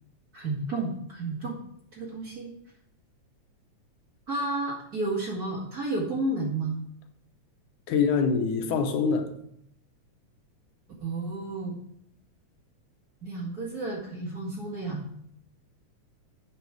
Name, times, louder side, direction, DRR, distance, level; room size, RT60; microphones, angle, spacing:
voice 1, 0.3-1.6 1.9-2.5 4.3-6.8 11.0-11.8 13.2-15.0, right 2 dB, 35° right, -3 dB, 2.0 m, -31 dB
voice 2, 7.9-9.3, left 5 dB, 80° left, 6 dB, 2.4 m, -24 dB
8.2 x 6.7 x 4.7 m, 0.71 s
omnidirectional pair, 3.5 m